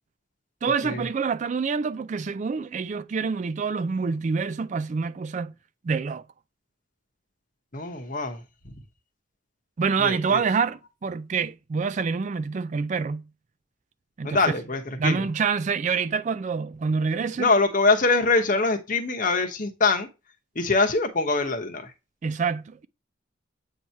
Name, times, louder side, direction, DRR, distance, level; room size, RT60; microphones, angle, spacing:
voice 1, 0.6-5.5 5.8-6.2 9.8-13.3 14.2-14.6 15.0-17.5 22.2-22.9, right 5 dB, 35° right, 0.3 m, -26 dB
voice 2, 7.7-8.7 10.0-10.4 14.2-15.2 17.4-20.1 20.5-21.9, left 3 dB, 40° left, 1.0 m, -24 dB
8.4 x 2.8 x 4.5 m
head